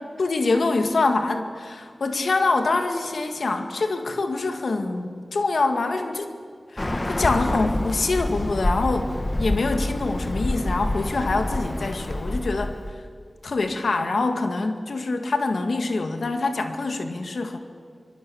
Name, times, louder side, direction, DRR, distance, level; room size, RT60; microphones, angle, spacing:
voice 1, 0.2-6.4 6.7-9.1 9.4-12.8 13.4-17.6, left 3 dB, 85° left, 6 dB, 2.0 m, -25 dB
Bird, 6.8-12.9, left 1 dB, 35° left, 1.8 m, -27 dB
25.5 x 22.0 x 7.1 m, 2.1 s
cardioid pair, 40°, 0 cm